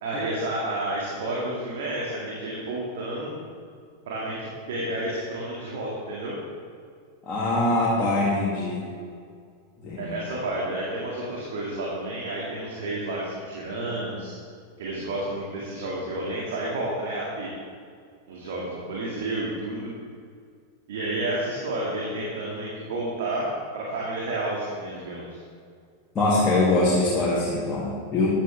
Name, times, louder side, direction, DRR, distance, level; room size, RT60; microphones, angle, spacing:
voice 1, 0.0-3.3 4.1-6.4 10.0-14.4 14.8-17.5 18.3-19.9 20.9-25.4, right 1 dB, 55° right, -4 dB, 2.2 m, -30 dB
voice 2, 7.3-8.8 9.8-10.1 26.1-28.3, left 2 dB, 20° left, -8 dB, 2.5 m, -23 dB
13.5 x 10.0 x 3.5 m, 2.2 s
figure-of-eight pair, 90°, 0 cm